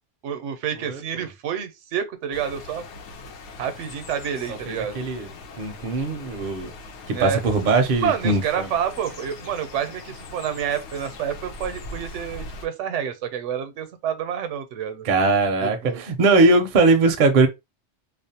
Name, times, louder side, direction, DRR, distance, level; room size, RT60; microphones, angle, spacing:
voice 1, 0.2-2.9 3.6-5.0 7.1-7.4 8.0-15.1 15.6-16.0, right 8 dB, 80° right, 0.9 m, -28 dB
voice 2, 0.7-1.3 4.5-5.3 5.6-6.7 7.1-8.7 15.0-17.5, right 3 dB, 55° right, 0.6 m, -20 dB
sound 1, 2.3-12.7, left 3 dB, 75° left, 0.9 m, -40 dB
2.5 x 2.0 x 2.7 m
omnidirectional pair, 1.2 m